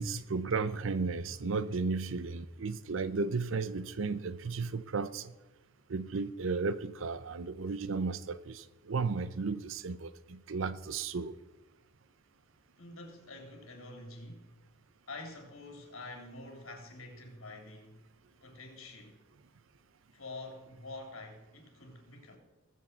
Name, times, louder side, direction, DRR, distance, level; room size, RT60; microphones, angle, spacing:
voice 1, 0.0-5.3 5.9-11.3, right 4 dB, 65° right, 0.6 m, -34 dB
voice 2, 12.8-14.5 15.1-18.0 18.4-19.2 20.1-22.4, left 2 dB, 80° left, 3.3 m, -47 dB
20.0 x 7.5 x 4.5 m
head